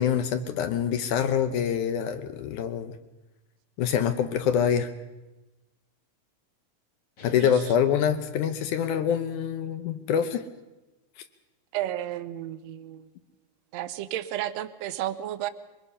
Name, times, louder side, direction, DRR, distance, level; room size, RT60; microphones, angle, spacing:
voice 1, 0.0-3.0 3.8-4.9 7.2-10.4, left 8 dB, 75° left, 9 dB, 2.2 m, -25 dB
sound 1, 7.2-9.7, left 2 dB, 50° left, 3.4 m, -46 dB
voice 2, 11.7-13.1 13.7-15.5, right 13 dB, 75° right, 13 dB, 1.6 m, -32 dB
23.0 x 20.5 x 5.6 m, 1.1 s
omnidirectional pair, 3.9 m